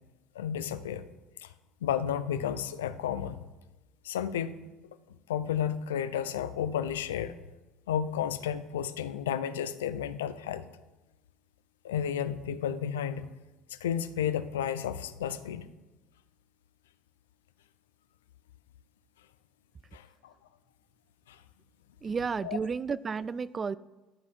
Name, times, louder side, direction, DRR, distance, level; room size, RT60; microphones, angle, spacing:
voice 1, 0.4-1.1 1.4-1.5 1.8-3.4 4.0-4.6 5.3-7.4 7.9-10.7 11.8-13.3 13.8-15.7 19.9-20.3 21.3-21.4 22.4-22.6, left 9 dB, 85° left, 13 dB, 0.4 m, -32 dB
voice 2, 22.0-23.8, right 5 dB, 30° right, 19 dB, 0.3 m, -32 dB
11.5 x 4.1 x 4.7 m, 1.1 s
hypercardioid pair, 65°, 0 cm